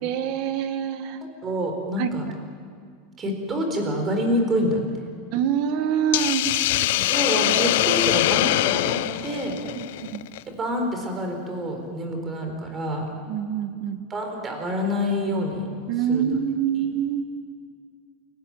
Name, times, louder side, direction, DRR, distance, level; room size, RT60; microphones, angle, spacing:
voice 1, 0.0-1.2 2.0-2.1 5.3-6.5 6.8-6.9 9.7-10.2 13.3-14.0 15.9-17.3, right 8 dB, 45° right, 9 dB, 1.6 m, -25 dB
voice 2, 1.4-2.2 3.2-4.8 6.9-9.6 10.6-13.1 14.1-15.7 16.1-16.2, equal, 15° right, 4 dB, 4.2 m, -27 dB
Hiss, 6.1-10.4, left 16 dB, 65° left, 0.6 m, -23 dB
29.0 x 18.5 x 8.9 m, 2.1 s
supercardioid pair, 170°, 0 cm